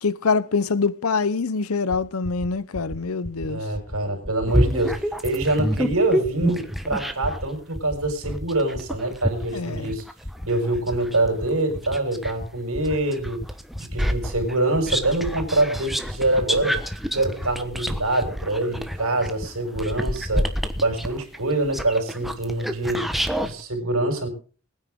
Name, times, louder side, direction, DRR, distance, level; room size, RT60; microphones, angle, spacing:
voice 1, 0.0-3.6 9.5-9.9, left 4 dB, 80° left, 0.8 m, -24 dB
sound 1, 1.9-2.0 2.2-2.5 2.7-3.0 3.2-3.5 3.7-4.0 4.2-4.5 4.7-5.0 5.2-5.5 5.7-6.0 6.2-6.5 6.7-7.0 7.2-7.5 7.7-8.0 8.2-8.5 8.7-9.0 9.2-9.5 9.7-10.0 10.2-10.5 10.7-11.0 11.2-11.5 11.7-12.0 12.2-12.5 12.7-13.0 13.2-13.5 13.7-14.0 14.2-14.5 14.7-15.0 15.2-15.5 15.7-16.0 16.2-16.5 16.7-17.0 17.2-17.5 17.7-18.0 18.2-18.5 18.7-19.0 19.2-19.5 19.7-20.0 20.2-20.5 20.7-21.0, left 1 dB, 15° left, 1.1 m, -34 dB
voice 2, 3.5-5.0 5.2-10.0 10.5-13.4 13.8-16.8 17.1-20.5 20.8-23.1 23.4-24.3, right 2 dB, 75° right, 5.2 m, -25 dB
sound 2, 4.5-7.5 8.0-12.4 12.8-23.5, equal, ahead, 1.2 m, -28 dB
21.5 x 9.7 x 3.7 m
head